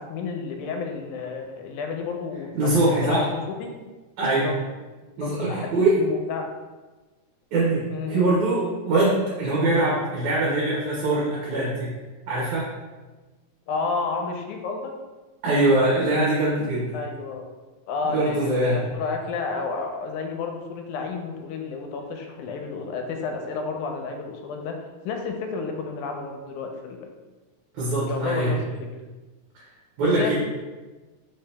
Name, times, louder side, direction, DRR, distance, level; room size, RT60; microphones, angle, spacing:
voice 1, 0.0-3.7 4.3-4.6 5.2-6.5 7.9-8.4 13.7-14.9 16.9-17.5 17.9-24.8 25.0-27.0 28.1-28.6 30.0-30.3, left 4 dB, 85° left, 3 dB, 2.0 m, -31 dB
voice 2, 2.5-3.3 4.2-4.5 5.2-6.0 7.5-7.8 8.1-11.9 12.3-12.7 15.4-17.0 18.1-18.8 27.7-28.6 30.0-30.3, right 2 dB, 75° right, -7 dB, 2.4 m, -22 dB
5.0 x 2.8 x 3.3 m, 1.2 s
omnidirectional pair, 3.4 m